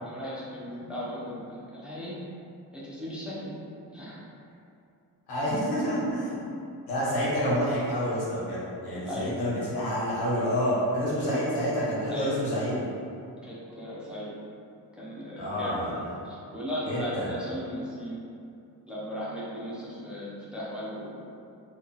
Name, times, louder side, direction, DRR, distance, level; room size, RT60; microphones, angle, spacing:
voice 1, 0.0-2.1 2.7-3.5 3.9-4.2 9.0-9.4 11.3-11.4 12.1-12.5 13.4-14.3 14.9-15.8 16.2-18.2 18.9-21.2, equal, ahead, -8 dB, 0.6 m, -37 dB
voice 2, 5.3-6.5 6.9-12.8 15.4-16.0 16.8-17.3, equal, 90° left, -8 dB, 1.2 m, -28 dB
2.9 x 2.3 x 3.8 m, 2.6 s
wide cardioid pair, 130°, 38 cm